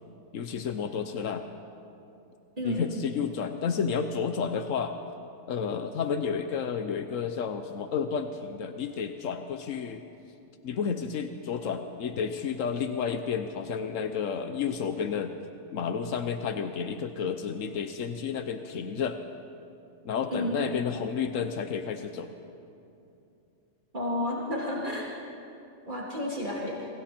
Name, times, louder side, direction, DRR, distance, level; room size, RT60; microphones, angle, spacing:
voice 1, 0.3-1.4 2.6-4.9 5.5-10.0 10.6-15.3 15.7-19.2 20.0-22.3, left 6 dB, 90° left, 7 dB, 1.3 m, -31 dB
voice 2, 23.9-25.1 25.9-26.9, left 1 dB, 40° right, -5 dB, 3.4 m, -31 dB
28.0 x 25.5 x 4.4 m, 2.7 s
omnidirectional pair, 1.3 m